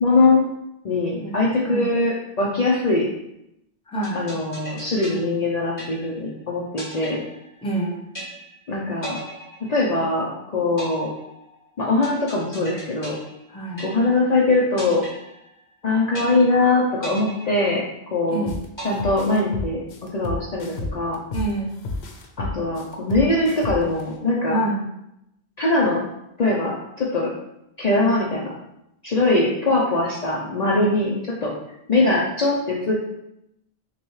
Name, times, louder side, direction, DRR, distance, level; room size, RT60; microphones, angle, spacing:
voice 1, 0.0-0.5 0.8-3.1 4.1-7.2 8.7-9.2 9.7-11.1 11.8-13.2 13.8-15.0 15.8-17.8 18.1-18.5 18.8-19.8 20.1-21.2 22.4-24.6 25.6-26.0 26.4-27.3 27.8-28.5 29.0-31.5 31.9-32.9, left 2 dB, 50° left, -4 dB, 0.6 m, -21 dB
voice 2, 3.9-4.2 7.6-8.1 13.5-13.8 18.3-18.6 21.3-21.7 24.5-24.8, right 2 dB, 5° left, -4 dB, 0.8 m, -26 dB
sound 1, 4.0-6.3 6.8-7.8 8.1-8.7 9.0-10.3 10.8-14.3 14.8-15.8 16.1-16.7 17.0-18.3 18.8-19.8, equal, 25° left, 1.6 m, -38 dB
sound 2, 18.5-18.6 19.0-21.5 21.8-24.0, left 3 dB, 80° left, 0.9 m, -30 dB
5.8 x 2.3 x 3.1 m, 0.83 s
omnidirectional pair, 1.1 m